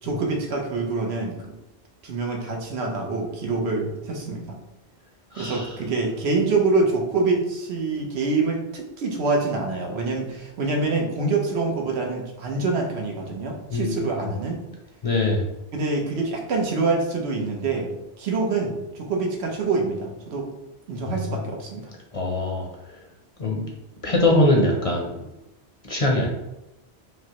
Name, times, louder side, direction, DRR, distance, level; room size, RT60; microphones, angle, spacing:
voice 1, 0.0-1.4 2.0-4.6 5.4-14.6 15.7-17.9 18.2-20.5 20.9-21.9, right 3 dB, 85° right, 1 dB, 1.0 m, -25 dB
voice 2, 5.3-5.8 13.7-14.3 15.0-15.4 21.1-21.4 22.1-23.0 23.4-23.6 24.0-25.1 25.8-26.3, left 1 dB, 40° left, -1 dB, 0.6 m, -23 dB
5.0 x 2.0 x 2.9 m, 0.93 s
omnidirectional pair, 1.1 m